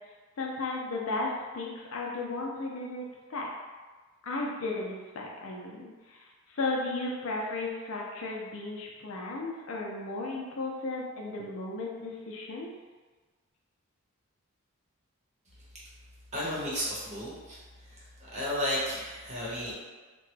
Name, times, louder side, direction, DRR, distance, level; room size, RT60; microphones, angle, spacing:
voice 1, 0.4-3.5 4.2-12.7, left 2 dB, 70° left, -1 dB, 0.5 m, -35 dB
voice 2, 16.3-17.6 17.9-18.1 18.3-19.7, equal, 30° right, -8 dB, 0.9 m, -33 dB
2.9 x 2.2 x 3.2 m, 1.3 s
head